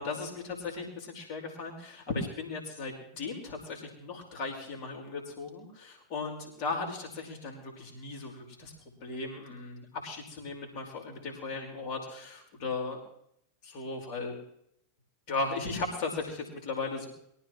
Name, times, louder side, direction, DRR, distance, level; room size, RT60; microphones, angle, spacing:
voice 1, 0.0-8.7 9.0-13.0 13.6-14.4 15.3-17.1, left 3 dB, 45° left, 1 dB, 5.2 m, -37 dB
23.5 x 15.0 x 3.2 m, 0.71 s
figure-of-eight pair, 90°, 0 cm